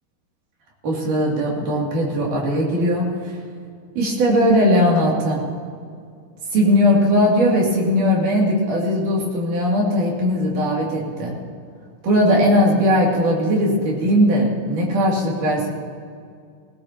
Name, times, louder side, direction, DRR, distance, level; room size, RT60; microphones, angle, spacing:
voice 1, 0.8-3.3 4.0-5.4 6.5-11.3 12.0-15.7, equal, 80° right, -3 dB, 4.1 m, -19 dB
19.5 x 17.5 x 2.9 m, 2.2 s
omnidirectional pair, 3.6 m